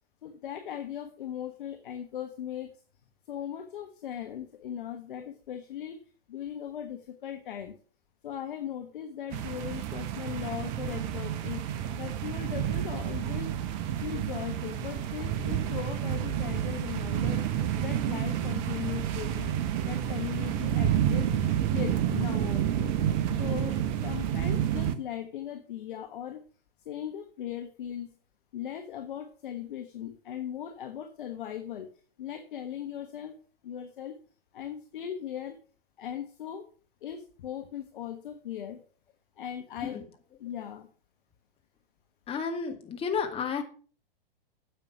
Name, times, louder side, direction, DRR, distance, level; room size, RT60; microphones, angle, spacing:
voice 1, 0.2-2.7 3.3-6.0 6.3-7.7 8.2-11.6 12.0-13.5 14.0-17.4 17.8-19.5 19.8-21.3 21.7-22.9 23.4-26.4 26.8-28.1 28.5-31.9 32.2-33.3 33.6-34.1 34.5-35.6 36.0-36.6 37.0-38.8 39.4-40.0 40.4-40.9, left 10 dB, 60° left, 7 dB, 1.5 m, -38 dB
sound 1, 9.3-24.9, right 10 dB, 35° right, 1.0 m, -29 dB
voice 2, 42.3-43.6, left 6 dB, 20° left, 4 dB, 2.1 m, -32 dB
10.0 x 7.5 x 6.1 m, 0.41 s
figure-of-eight pair, 110°, 29 cm